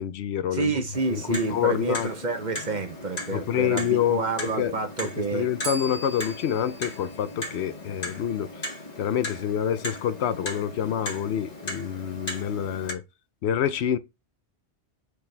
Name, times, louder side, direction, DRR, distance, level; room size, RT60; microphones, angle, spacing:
voice 1, 0.0-0.7 1.1-2.1 3.3-4.8 5.3-8.7 9.0-13.0 13.4-14.0, left 9 dB, 75° left, 0.9 m, -27 dB
voice 2, 0.5-5.5, right 3 dB, 45° right, 0.9 m, -29 dB
Clock, 0.9-12.9, left 1 dB, 40° left, 1.4 m, -38 dB
Bell, 5.6-8.4, right 2 dB, 80° right, 1.8 m, -41 dB
6.5 x 4.3 x 3.3 m
omnidirectional pair, 1.1 m